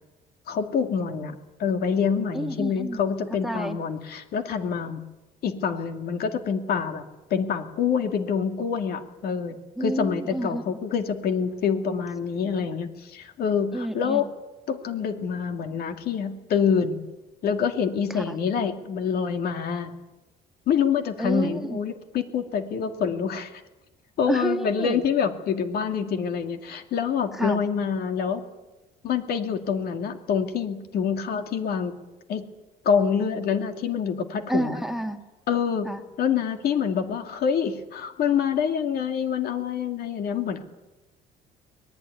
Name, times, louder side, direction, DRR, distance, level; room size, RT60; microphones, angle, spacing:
voice 1, 0.5-5.0 5.4-7.0 7.3-14.3 14.7-17.0 17.4-19.9 20.7-23.6 24.2-28.4 29.0-32.0 32.3-32.4 32.8-34.8 35.5-35.9 36.2-40.6, left 7 dB, 65° left, 6 dB, 2.5 m, -26 dB
voice 2, 2.3-3.0 3.4-3.8 9.8-10.6 13.7-14.3 18.1-18.4 21.2-21.8 24.3-25.0 27.3-27.6 34.5-35.2 35.9-36.0, right 1 dB, ahead, 5 dB, 2.1 m, -29 dB
23.5 x 19.5 x 9.5 m, 1.1 s
cardioid pair, 110°, 17 cm